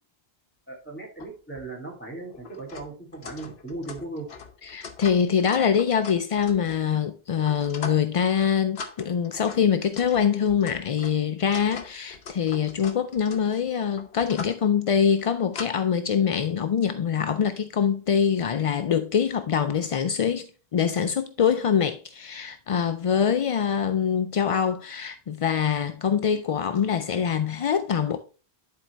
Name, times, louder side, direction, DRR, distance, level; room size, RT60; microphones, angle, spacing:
voice 1, 0.7-4.3, right 2 dB, 10° left, 2.7 m, -37 dB
sound 1, 1.2-1.3 1.6-1.7 2.3-7.0 7.4-8.1 8.4-8.5 8.8-14.6 15.1-15.7, left 5 dB, 80° left, 1.1 m, -41 dB
voice 2, 4.7-28.2, left 7 dB, 55° left, 0.3 m, -24 dB
10.5 x 4.3 x 3.3 m
omnidirectional pair, 1.0 m